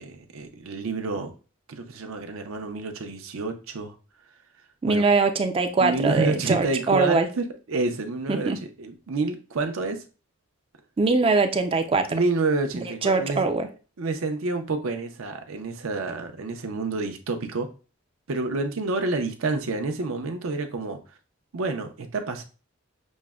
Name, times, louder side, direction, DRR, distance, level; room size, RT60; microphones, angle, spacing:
voice 1, 0.0-1.3 1.7-3.9 4.8-5.0 5.8-8.5 8.8-10.0 12.1-13.5 14.0-17.7 18.3-21.0 21.5-22.4, right 3 dB, 75° right, 0.6 m, -28 dB
voice 2, 4.8-7.3 8.3-8.6 11.0-12.2 12.7-13.7, right 4 dB, 25° right, 0.3 m, -22 dB
6.2 x 2.1 x 2.3 m
head